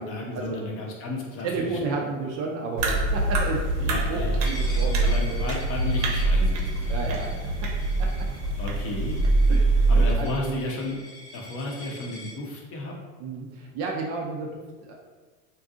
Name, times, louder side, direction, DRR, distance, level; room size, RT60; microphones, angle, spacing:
voice 1, 0.0-1.8 3.8-4.5 5.0-7.2 8.6-9.2 9.9-11.0 11.3-12.9, left 2 dB, 35° left, -1 dB, 0.6 m, -33 dB
voice 2, 1.4-5.5 6.9-7.7 8.0-8.3 9.5-10.6 13.2-14.9, right 4 dB, 40° right, 0 dB, 0.4 m, -32 dB
sound 1, 2.8-10.1, right 2 dB, 60° right, 0.7 m, -23 dB
Coin (dropping), 4.4-12.4, left 1 dB, 90° left, 1.1 m, -45 dB
3.7 x 2.6 x 2.4 m, 1.4 s
supercardioid pair, 135°, 40 cm